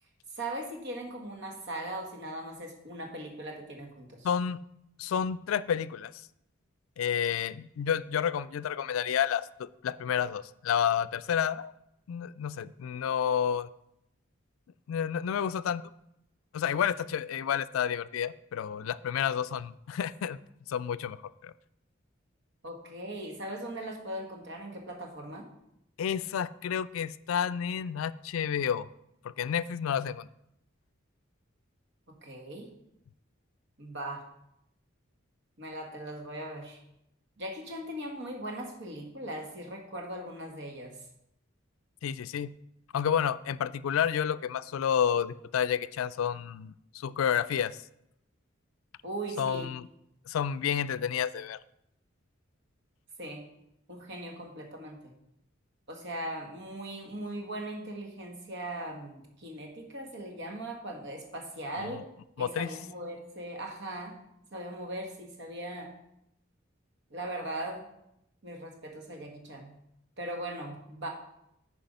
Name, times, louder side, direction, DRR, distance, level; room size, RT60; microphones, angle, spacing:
voice 1, 0.3-4.3 22.6-25.5 32.1-32.7 33.8-34.2 35.6-36.8 37.4-41.0 49.0-49.7 53.2-53.5 53.9-55.1 55.9-62.0 62.4-64.2 64.5-65.9 67.1-67.9 68.4-69.7 70.2-71.1, right 1 dB, 60° right, 2 dB, 1.6 m, -39 dB
voice 2, 4.2-4.6 5.0-6.1 7.0-11.7 12.1-13.7 14.9-15.8 16.5-20.4 20.7-21.2 21.4-21.5 26.0-28.9 29.4-30.3 42.0-42.5 42.9-47.8 49.4-49.9 50.3-51.6 61.8-61.9 62.4-62.7, left 8 dB, 85° left, 14 dB, 0.3 m, -30 dB
9.0 x 4.8 x 5.3 m, 0.80 s
head